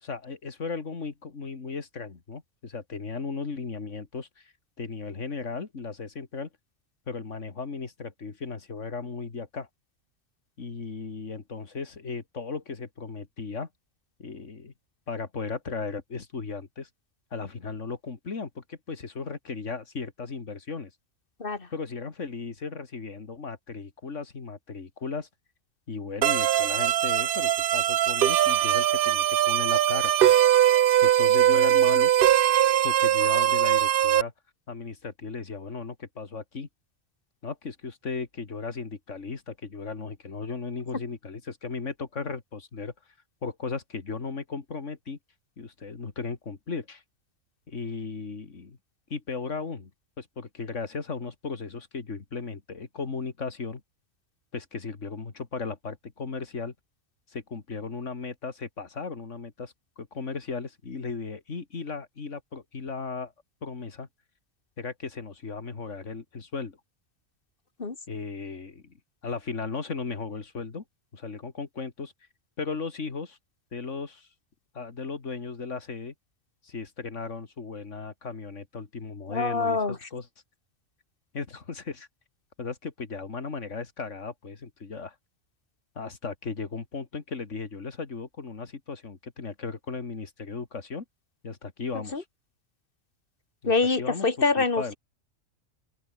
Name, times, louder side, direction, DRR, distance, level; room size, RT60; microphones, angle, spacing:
voice 1, 0.0-6.5 7.1-9.7 10.6-13.7 14.2-14.7 15.1-16.9 17.3-20.9 21.7-25.3 25.9-30.1 31.0-32.1 32.8-34.3 34.7-36.7 37.4-42.9 43.4-45.2 45.6-47.0 47.7-48.8 49.1-49.9 50.2-53.8 54.5-56.7 57.3-63.3 63.6-64.1 64.8-66.8 68.1-68.9 69.2-70.8 71.1-72.1 72.6-73.4 73.7-74.3 74.7-76.1 76.6-80.3 81.3-82.1 82.6-85.2 86.0-91.0 91.4-92.2 93.6-93.7 94.0-94.3 94.6-95.0, left 4 dB, 65° left, 2.6 m, -36 dB
sound 1, 26.2-34.2, right 11 dB, 60° right, 0.6 m, -21 dB
voice 2, 79.3-80.0 92.1-92.2 93.6-94.9, left 4 dB, 40° left, 2.4 m, -25 dB
omnidirectional pair, 1.4 m